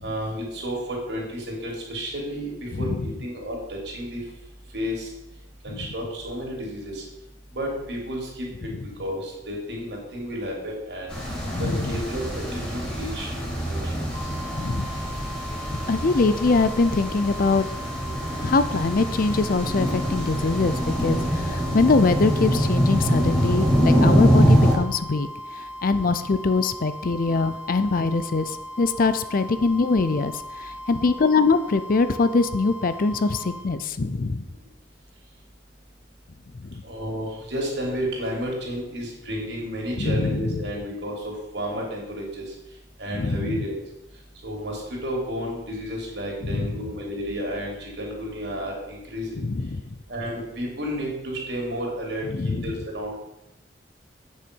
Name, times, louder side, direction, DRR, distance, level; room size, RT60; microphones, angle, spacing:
voice 1, 0.0-4.2 4.7-5.1 5.6-7.0 7.5-8.7 9.0-11.1 11.6-13.3 36.8-42.4 43.0-43.8 44.4-49.4 50.1-53.2, equal, 65° right, -2 dB, 3.3 m, -31 dB
voice 2, 2.7-3.1 5.7-5.9 11.5-11.9 14.6-14.9 15.9-17.7 18.4-25.3 25.6-30.3 30.6-34.4 36.6-36.8 40.0-40.5 43.1-43.6 46.5-46.7 49.4-49.8 52.3-52.7, left 3 dB, 50° left, 12 dB, 0.5 m, -23 dB
sound 1, 11.1-24.7, equal, 10° left, 3.2 m, -24 dB
sound 2, 14.1-33.6, left 1 dB, 25° left, 2.5 m, -38 dB
8.6 x 6.5 x 5.3 m, 0.87 s
head